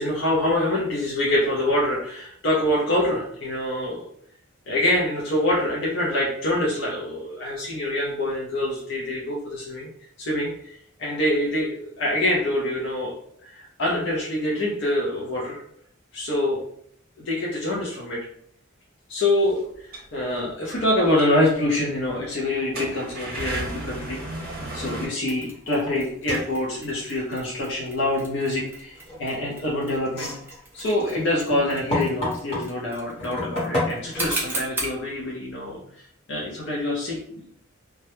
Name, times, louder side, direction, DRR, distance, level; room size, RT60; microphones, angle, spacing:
voice 1, 0.0-4.1 4.7-9.9 10.2-13.2 13.4-15.6 16.1-16.6 17.2-18.3 19.1-24.2 24.7-30.3 30.7-37.2, left 1 dB, 60° left, -4 dB, 0.5 m, -25 dB
sound 1, 19.7-20.1 20.8-20.9 21.2-21.3 21.7-21.8 22.6-25.1, right 1 dB, 45° right, 0.8 m, -33 dB
Mechanisms, 25.3-35.0, right 2 dB, 10° right, 0.5 m, -38 dB
sound 2, 25.9-26.0 26.3-26.5 29.0-29.4 30.0-32.7 33.2-34.3, left 2 dB, 30° left, 1.0 m, -29 dB
2.2 x 2.0 x 2.9 m, 0.65 s
head